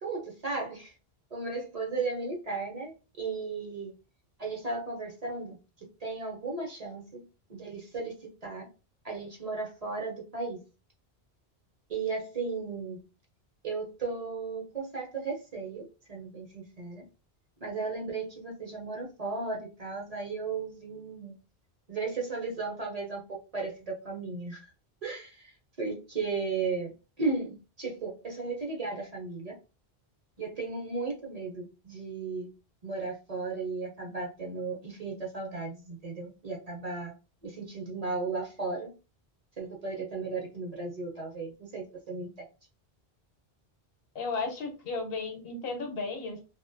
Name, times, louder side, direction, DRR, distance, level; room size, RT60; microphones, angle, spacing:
voice 1, 0.0-0.9 1.3-3.9 4.4-5.6 6.0-7.2 7.5-8.1 8.4-8.7 9.0-10.6 11.9-13.0 13.6-17.0 17.6-21.3 21.9-24.7 25.0-25.5 25.8-26.9 27.2-29.6 30.4-32.5 32.8-37.1 37.4-38.9 39.6-42.3, right 4 dB, 45° right, -1 dB, 0.6 m, -35 dB
voice 2, 44.1-46.4, left 4 dB, 70° left, 4 dB, 0.9 m, -34 dB
2.5 x 2.1 x 2.5 m, 0.31 s
omnidirectional pair, 1.1 m